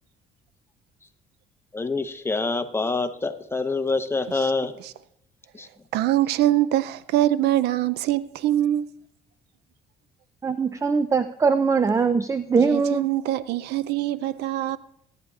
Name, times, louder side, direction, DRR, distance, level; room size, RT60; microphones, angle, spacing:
voice 1, 1.7-4.7 5.5-5.7, left 3 dB, 15° left, 0.8 m, -26 dB
voice 2, 5.9-8.9 12.6-14.8, right 13 dB, 80° right, 0.4 m, -23 dB
voice 3, 10.4-13.1, right 5 dB, 20° right, 0.4 m, -21 dB
22.0 x 9.8 x 2.4 m
cardioid pair, 110°, 17 cm